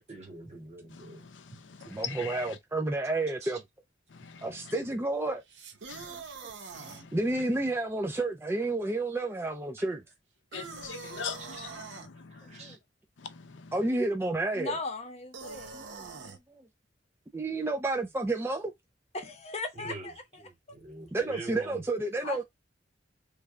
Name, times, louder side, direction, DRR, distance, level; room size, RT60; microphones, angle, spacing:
voice 1, 0.1-1.2 3.4-3.5 12.3-12.8 19.7-20.1 20.7-21.8, right 2 dB, 35° right, 1.1 m, -44 dB
voice 2, 0.9-2.6 4.1-4.7 5.9-6.1 6.7-7.2 10.5-12.8 13.2-13.7, left 7 dB, 90° left, 0.5 m, -42 dB
voice 3, 1.8-3.6 4.4-5.4 6.1-6.6 6.8-10.0 12.6-12.8 13.7-14.7 15.7-16.6 17.3-18.7 21.1-22.4, right 2 dB, 15° right, 0.4 m, -31 dB
sound 1, 5.5-7.0 10.5-12.1 15.3-16.4, right 5 dB, 80° right, 0.7 m, -44 dB
voice 4, 14.5-15.7 19.1-20.4 20.7-20.8 22.2-22.4, left 3 dB, 35° left, 0.8 m, -37 dB
3.2 x 2.2 x 3.6 m
head